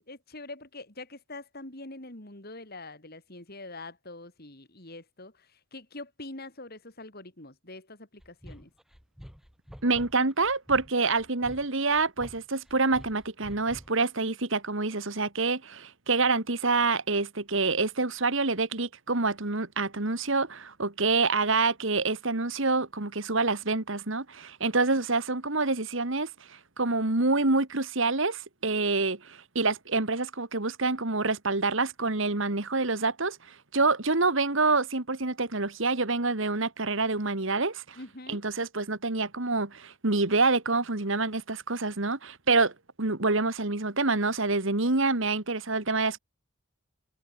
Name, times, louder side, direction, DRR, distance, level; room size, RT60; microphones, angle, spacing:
voice 1, 0.1-8.7 38.0-38.4, left 2 dB, 45° left, 4.2 m, -44 dB
sound 1, 8.2-14.1, equal, ahead, 3.8 m, -48 dB
voice 2, 9.8-38.0 38.3-42.7 43.0-46.2, right 3 dB, 60° right, 1.9 m, -27 dB
head